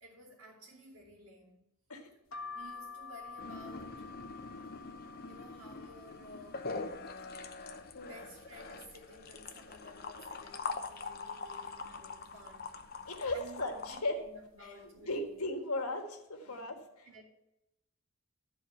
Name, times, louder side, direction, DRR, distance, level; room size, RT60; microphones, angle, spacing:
voice 1, 0.0-1.6 2.5-4.1 5.3-6.8 8.0-12.7 13.0-15.4 16.5-16.8 17.0-17.2, equal, 75° right, -7 dB, 2.7 m, -54 dB
sound 1, 2.3-8.0 8.4-9.2 9.6-9.7 9.9-11.0 11.5-11.9 12.6-12.9 13.7-14.0 14.2-14.4, left 4 dB, 65° left, 1.2 m, -50 dB
sound 2, 3.4-14.0, left 4 dB, 45° left, 0.8 m, -44 dB
voice 2, 13.1-14.2 14.6-14.7 15.0-17.1, left 2 dB, 85° left, 4 dB, 1.8 m, -37 dB
12.5 x 4.6 x 7.7 m, 0.91 s
head